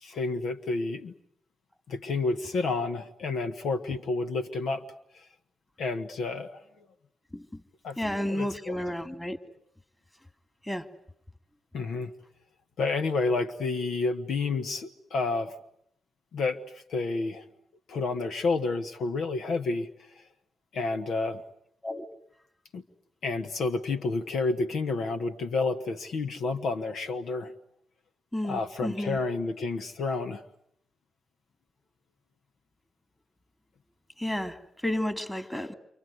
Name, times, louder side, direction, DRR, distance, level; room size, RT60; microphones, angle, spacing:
voice 1, 0.0-1.1 1.9-4.8 5.8-6.6 7.8-8.0 8.3-8.8 11.7-12.1 12.8-15.5 16.3-16.6 16.9-17.4 17.9-19.9 20.7-21.4 22.7-22.8 23.2-27.5 28.4-30.4, left 3 dB, 75° left, 8 dB, 1.5 m, -30 dB
voice 2, 8.0-9.4 10.6-10.9 21.8-22.0 28.3-29.2 34.2-35.7, left 1 dB, 10° left, 8 dB, 3.2 m, -32 dB
28.5 x 26.0 x 8.0 m, 0.73 s
supercardioid pair, 50°, 0 cm